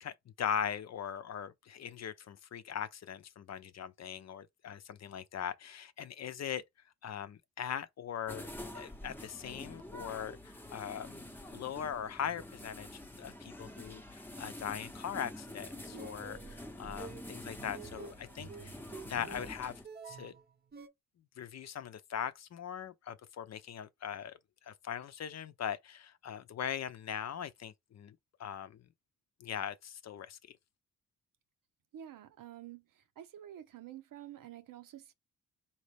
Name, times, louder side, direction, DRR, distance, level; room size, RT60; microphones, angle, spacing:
voice 1, 0.0-6.6 7.0-8.5 8.7-18.8 19.0-19.8 20.1-20.3 21.4-28.9 29.4-30.4, left 8 dB, 55° left, 0.6 m, -40 dB
sound 1, 8.3-19.9, left 1 dB, 5° left, 0.7 m, -47 dB
sound 2, 15.8-20.9, right 5 dB, 30° right, 0.7 m, -49 dB
voice 2, 31.9-35.1, right 11 dB, 85° right, 0.8 m, -49 dB
4.2 x 2.9 x 3.3 m
cardioid pair, 100°, 32 cm